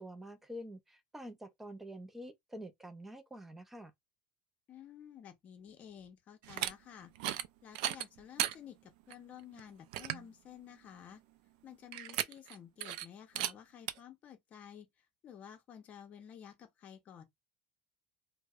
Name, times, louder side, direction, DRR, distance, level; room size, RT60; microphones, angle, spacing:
voice 1, 0.0-3.9, equal, 5° right, 0.4 m, -47 dB
voice 2, 4.7-7.1 7.6-11.2 11.6-14.9 15.2-17.2, left 9 dB, 30° left, 0.7 m, -52 dB
sound 1, 6.4-6.7 7.2-7.5 7.8-8.6 9.1-9.2 9.6-9.7 9.9-10.3 11.9-12.6 12.8-13.1 13.4-13.5 13.9-14.0, right 13 dB, 75° right, 0.4 m, -35 dB
4.5 x 2.0 x 2.4 m
cardioid pair, 175°, 5 cm